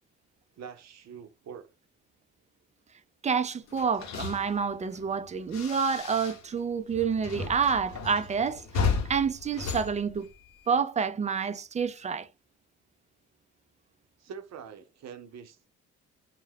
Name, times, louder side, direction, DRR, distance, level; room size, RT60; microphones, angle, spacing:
voice 1, 0.6-1.7 14.2-15.7, right 7 dB, 60° right, 0.6 m, -44 dB
voice 2, 3.2-10.3 10.7-12.3, right 6 dB, 25° right, 0.3 m, -28 dB
sound 1, 3.7-6.6 6.9-10.8, left 5 dB, 65° left, 0.7 m, -34 dB
2.2 x 2.1 x 3.2 m
cardioid pair, 70°, 30 cm